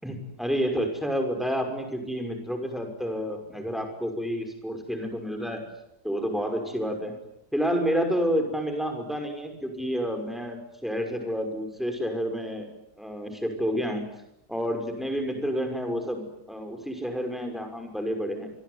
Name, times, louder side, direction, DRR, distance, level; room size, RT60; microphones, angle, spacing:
voice 1, 0.0-5.7 6.0-7.1 7.5-12.7 13.0-14.0 14.5-18.5, equal, ahead, 5 dB, 5.8 m, -29 dB
27.5 x 22.0 x 9.7 m, 0.82 s
omnidirectional pair, 1.7 m